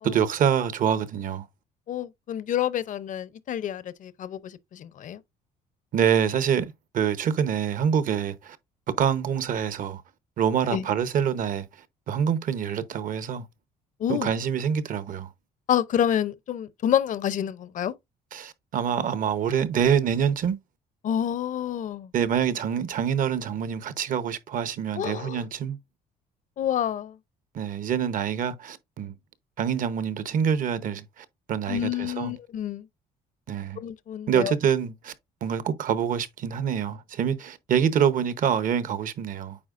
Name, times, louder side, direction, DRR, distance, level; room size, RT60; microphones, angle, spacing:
voice 1, 0.0-1.4 5.9-8.6 9.0-10.0 10.4-11.7 12.1-13.4 14.1-15.3 18.3-20.6 22.1-25.8 27.5-29.1 29.6-32.3 33.5-33.8 34.3-35.1 35.4-39.6, right 8 dB, 55° right, 0.9 m, -26 dB
voice 2, 1.9-5.2 10.7-10.9 14.0-14.3 15.7-17.9 21.0-22.1 25.0-25.4 26.6-27.2 31.7-32.9 33.8-34.5, left 10 dB, 50° left, 0.6 m, -28 dB
8.6 x 4.5 x 2.5 m
cardioid pair, 110°, 17 cm